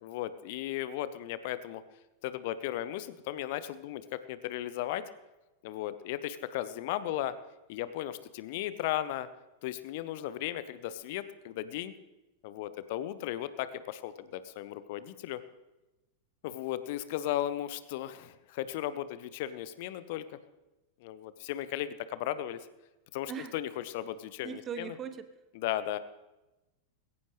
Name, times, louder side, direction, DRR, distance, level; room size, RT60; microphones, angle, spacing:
voice 1, 0.0-1.8 2.2-5.1 5.6-7.3 7.7-9.3 9.6-11.9 12.4-15.4 16.4-20.4 21.0-22.7 23.1-24.9 25.5-26.0, left 13 dB, 50° left, 14 dB, 0.8 m, -36 dB
voice 2, 24.4-25.3, right 7 dB, 25° right, 11 dB, 1.1 m, -39 dB
20.5 x 17.0 x 3.3 m, 1.0 s
figure-of-eight pair, 90°, 0 cm